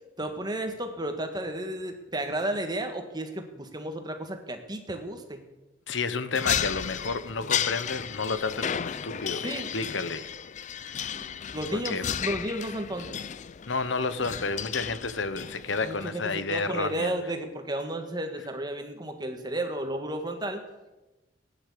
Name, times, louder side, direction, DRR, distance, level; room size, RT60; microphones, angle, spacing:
voice 1, 0.2-5.4 9.4-9.7 11.1-11.2 11.5-13.2 15.8-20.6, right 1 dB, 20° right, 1.6 m, -33 dB
voice 2, 5.9-10.3 10.8-11.0 11.7-12.1 13.7-17.1, left 4 dB, 75° left, 1.0 m, -31 dB
sound 1, 6.3-16.1, left 9 dB, 40° left, 0.4 m, -34 dB
16.0 x 10.0 x 8.4 m
head